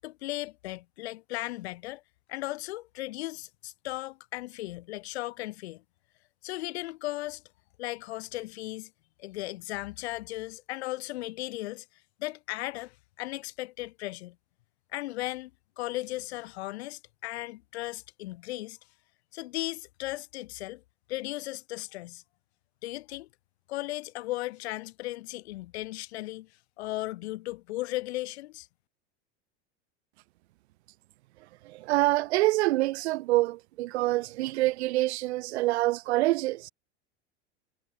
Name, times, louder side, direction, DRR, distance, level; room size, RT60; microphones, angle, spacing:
voice 1, 0.0-2.0 2.3-5.8 6.4-7.4 7.8-8.9 9.2-11.8 12.2-14.3 14.9-15.5 15.8-18.8 19.3-20.8 21.1-22.2 22.8-23.3 23.7-26.5 26.8-28.7, left 18 dB, 70° left, 6.8 m, -36 dB
voice 2, 31.6-36.7, right 18 dB, 75° right, 0.8 m, -26 dB
hypercardioid pair, 100°, 33 cm